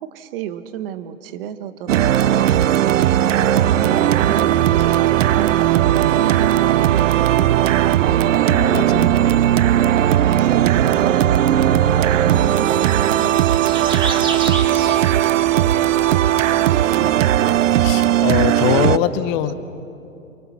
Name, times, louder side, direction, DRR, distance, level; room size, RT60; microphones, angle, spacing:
voice 1, 0.0-2.7 3.3-8.0 10.2-11.8 12.0-13.0 19.0-19.1, right 9 dB, 40° right, 11 dB, 1.4 m, -34 dB
sound 1, 1.9-19.0, right 12 dB, 60° right, 0.7 m, -17 dB
voice 2, 8.4-9.2 17.8-19.5, left 11 dB, 25° left, 12 dB, 1.0 m, -22 dB
sound 2, 11.4-17.5, right 3 dB, 10° right, 1.9 m, -33 dB
28.0 x 24.5 x 6.2 m, 2.6 s
hypercardioid pair, 135°, 43 cm